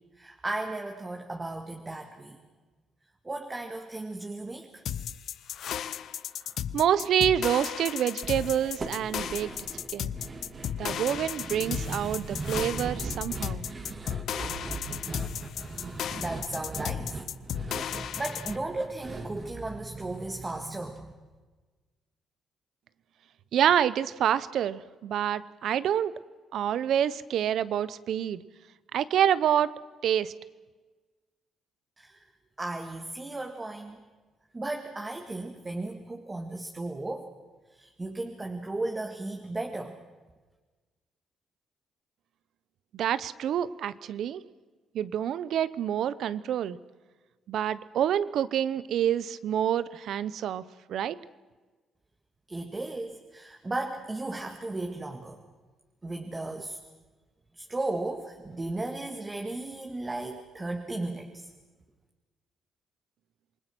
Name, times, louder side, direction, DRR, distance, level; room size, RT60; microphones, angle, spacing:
voice 1, 0.2-2.4 3.2-4.8 16.2-21.1 32.0-32.2 32.6-34.0 34.5-37.3 37.7-40.0 52.5-55.4 56.0-56.8 57.6-61.5, right 2 dB, 20° right, 3 dB, 2.0 m, -35 dB
sound 1, 4.9-18.6, left 9 dB, 70° left, 0.7 m, -35 dB
voice 2, 6.7-9.5 9.9-10.1 10.8-13.6 23.5-26.1 26.5-28.4 28.9-29.7 30.0-30.3 42.9-44.4 44.9-46.8 47.5-50.6 50.9-51.2, right 10 dB, 70° right, 17 dB, 0.8 m, -27 dB
sound 2, 8.2-20.5 20.8-20.9 21.2-21.3, right 3 dB, 40° right, 2.9 m, -39 dB
27.5 x 20.0 x 6.2 m, 1.3 s
cardioid pair, 90°, 0 cm